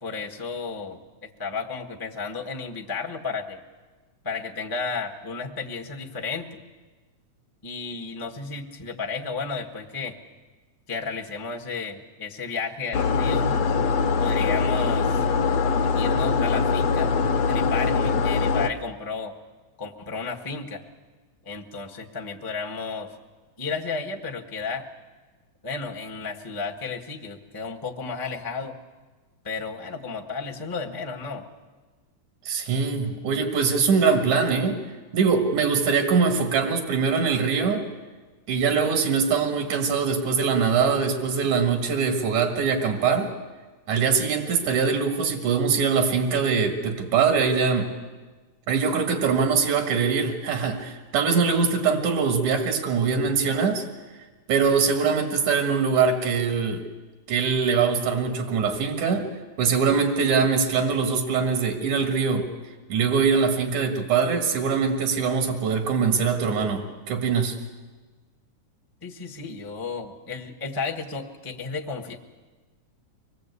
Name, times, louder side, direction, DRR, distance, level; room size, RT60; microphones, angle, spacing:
voice 1, 0.0-3.6 4.2-6.6 7.6-10.2 10.9-13.6 14.2-15.3 15.9-17.2 17.4-19.3 19.8-20.8 21.4-23.2 23.6-24.9 25.6-28.8 29.4-31.5 69.0-72.2, left 4 dB, 20° left, 0 dB, 0.6 m, -33 dB
sound 1, 12.9-18.7, left 5 dB, 70° left, 2.0 m, -22 dB
voice 2, 32.4-34.8 35.1-37.8 38.5-43.3 43.9-47.9 48.7-53.9 54.5-56.8 57.3-59.3 59.6-62.5 62.9-67.6, right 5 dB, 85° right, 5 dB, 3.0 m, -23 dB
24.5 x 20.0 x 8.3 m, 1.3 s
omnidirectional pair, 3.3 m